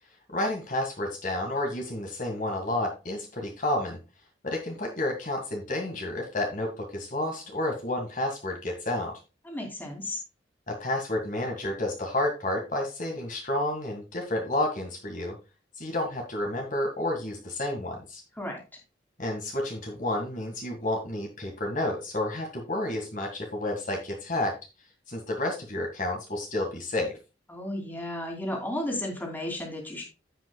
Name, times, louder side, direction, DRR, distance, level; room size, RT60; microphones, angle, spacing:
voice 1, 0.3-4.0 4.4-9.1 10.7-15.4 15.8-18.2 19.2-24.6 25.1-27.2, left 1 dB, 45° left, 1 dB, 1.8 m, -30 dB
voice 2, 9.4-10.2 18.4-18.6 27.5-30.0, left 1 dB, 10° left, -1 dB, 2.7 m, -33 dB
16.0 x 5.5 x 2.3 m, 0.30 s
head